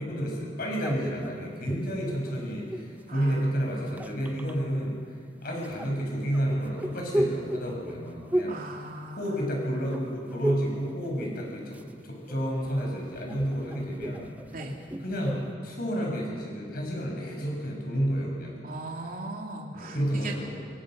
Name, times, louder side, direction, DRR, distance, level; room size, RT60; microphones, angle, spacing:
voice 1, 0.0-5.0 5.4-8.6 9.2-14.3 15.0-18.6 19.7-20.6, equal, 55° left, -1 dB, 7.0 m, -30 dB
sound 1, 0.8-3.0 3.7-4.5 5.6-9.6 9.9-10.8 11.1-12.0 12.3-15.5, right 1 dB, 10° right, 0.7 m, -34 dB
voice 2, 3.1-3.6 8.5-9.5 14.5-14.7 18.6-20.3, right 2 dB, 50° right, 0 dB, 3.0 m, -39 dB
26.5 x 22.0 x 6.5 m, 2.1 s
head